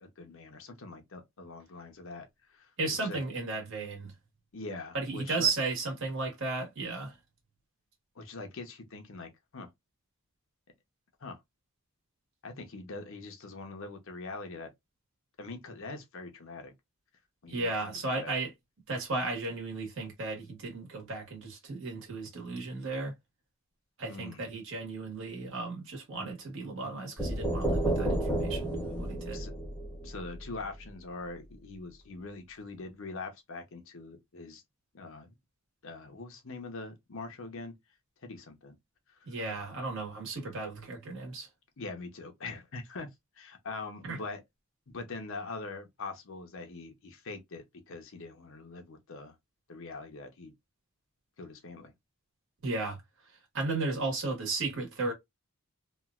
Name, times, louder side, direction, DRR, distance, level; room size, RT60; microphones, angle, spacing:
voice 1, 0.0-2.3 2.5-2.7 3.0-3.2 4.5-5.5 8.2-9.7 11.2-11.4 12.4-14.7 15.4-16.7 17.4-17.7 18.0-18.3 24.1-24.5 29.3-29.5 30.0-34.6 34.9-35.3 35.8-37.8 38.2-38.8 41.8-43.1 43.4-44.4 44.9-49.4 49.7-50.5 51.4-51.9, left 3 dB, 60° left, 0.8 m, -43 dB
voice 2, 2.8-4.1 4.9-7.2 17.5-18.5 18.9-23.1 24.0-29.4 39.3-41.5 44.0-44.2 52.6-53.0 53.3-55.1, right 3 dB, 60° right, 1.4 m, -34 dB
sound 1, 27.2-30.9, right 1 dB, 10° left, 0.9 m, -31 dB
3.0 x 2.5 x 2.4 m
head